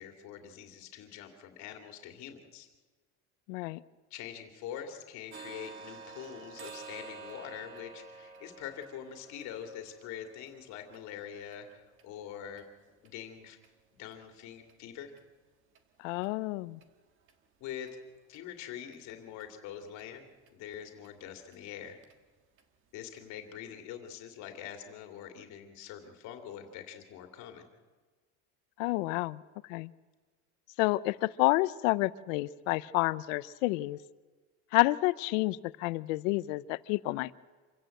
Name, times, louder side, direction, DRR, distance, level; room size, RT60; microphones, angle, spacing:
voice 1, 0.0-2.7 4.1-12.6 13.0-13.6 14.0-15.1 17.6-17.9 18.3-22.0 22.9-27.7, left 9 dB, 50° left, 5 dB, 2.7 m, -44 dB
voice 2, 3.5-3.8 16.0-16.8 28.8-29.4 29.7-29.9 30.8-34.0 34.7-37.3, left 20 dB, 90° left, 18 dB, 0.8 m, -29 dB
sound 1, 5.3-13.1 13.6-13.7 14.1-14.2 14.7-14.8 15.2-15.3 15.7-15.8 16.2-16.3 16.8-16.9 17.3-17.4 17.9-18.0 18.3-18.4 18.9-19.0 19.4-19.5 20.0-20.1 20.5-20.6 21.0-21.1 21.5-21.6 22.0-22.1 22.6-22.7 23.2-23.3, right 4 dB, 35° right, 1.7 m, -50 dB
26.5 x 16.0 x 7.8 m, 1.4 s
cardioid pair, 175°, 37 cm